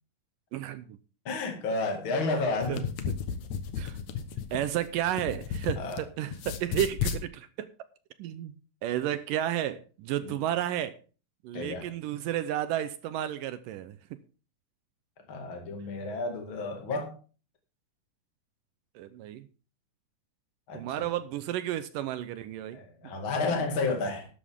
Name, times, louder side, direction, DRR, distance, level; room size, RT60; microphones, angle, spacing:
voice 1, 0.5-1.0 2.7-3.2 3.8-4.0 4.5-7.7 8.2-11.0 11.4-14.0 19.0-19.5 20.7-22.8, right 12 dB, 75° right, 2.2 m, -32 dB
voice 2, 1.3-2.8 5.8-6.0 10.2-10.3 11.5-11.9 15.3-17.2 20.7-20.8 22.7-24.3, left 3 dB, 40° left, 2.5 m, -31 dB
sound 1, 2.5-6.0 6.3-7.2, left 7 dB, 65° left, 2.1 m, -33 dB
12.5 x 11.0 x 3.6 m
omnidirectional pair, 4.3 m